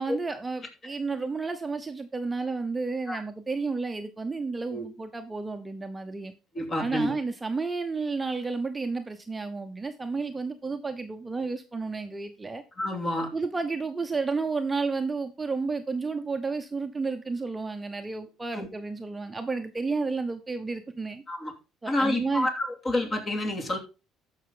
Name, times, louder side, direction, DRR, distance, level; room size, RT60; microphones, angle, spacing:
voice 1, 0.0-6.3 6.8-12.6 13.3-21.2 21.8-22.5, right 4 dB, 15° right, 7 dB, 0.9 m, -31 dB
voice 2, 6.5-7.2 12.8-13.3 18.5-18.7 21.3-21.5 21.9-23.8, left 1 dB, 30° left, 3 dB, 2.9 m, -28 dB
13.5 x 5.7 x 3.9 m, 0.30 s
cardioid pair, 110°, 0 cm